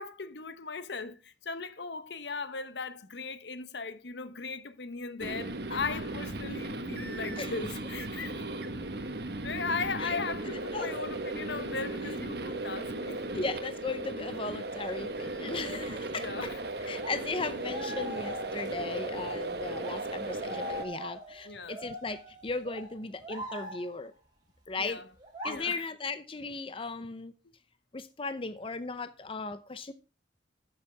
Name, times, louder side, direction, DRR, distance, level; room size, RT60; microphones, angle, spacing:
voice 1, 0.0-8.5 9.4-13.2 16.1-17.2 21.4-21.8 24.8-25.1 25.5-25.8, left 4 dB, 75° left, 1.0 m, -38 dB
sound 1, 5.2-20.9, right 2 dB, 60° right, 1.4 m, -36 dB
voice 2, 13.3-16.5 16.9-24.1 24.7-25.0 25.4-27.3 27.9-29.9, left 3 dB, 30° left, 0.6 m, -37 dB
sound 2, 16.9-19.3 19.7-24.1 25.2-25.5, equal, 25° right, 3.6 m, -42 dB
13.0 x 7.3 x 3.4 m
head